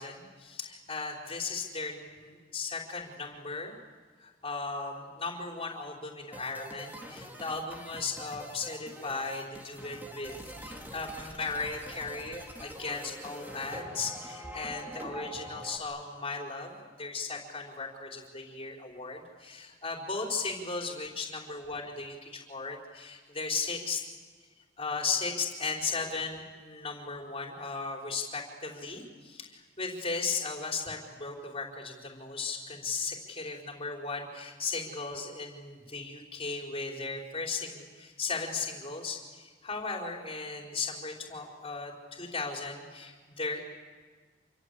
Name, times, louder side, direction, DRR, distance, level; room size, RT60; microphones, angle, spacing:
voice 1, 0.0-3.7 4.2-24.0 24.8-43.6, left 4 dB, 30° left, 0 dB, 4.6 m, -36 dB
sound 1, 6.3-15.8, right 1 dB, 10° right, 3.0 m, -44 dB
27.5 x 24.5 x 8.4 m, 1.5 s
head